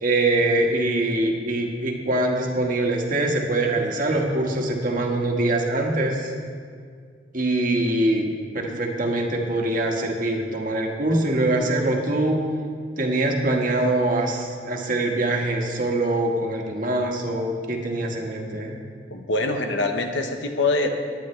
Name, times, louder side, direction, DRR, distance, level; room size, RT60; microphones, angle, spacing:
voice 1, 0.0-6.3 7.3-8.3 8.5-12.4 13.0-18.8, right 2 dB, 45° right, 1 dB, 1.5 m, -23 dB
voice 2, 19.1-20.9, left 2 dB, 75° left, 5 dB, 1.1 m, -24 dB
18.0 x 11.0 x 3.2 m, 2.1 s
head